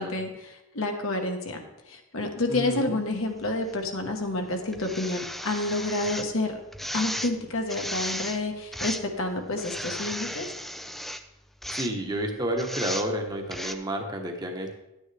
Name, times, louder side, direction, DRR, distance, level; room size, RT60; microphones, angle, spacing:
voice 1, 0.0-1.6 1.9-6.5 6.9-10.5, left 2 dB, 70° left, 3 dB, 1.3 m, -29 dB
voice 2, 2.5-3.0 11.7-14.7, right 1 dB, 20° right, 2 dB, 1.0 m, -30 dB
sound 1, 3.7-3.8 4.7-6.3 6.7-7.4 7.7-8.4 8.7-9.1 9.6-11.2 11.6-11.9 12.6-13.1 13.5-13.7, equal, ahead, 0.3 m, -35 dB
10.5 x 9.0 x 3.4 m, 0.92 s
head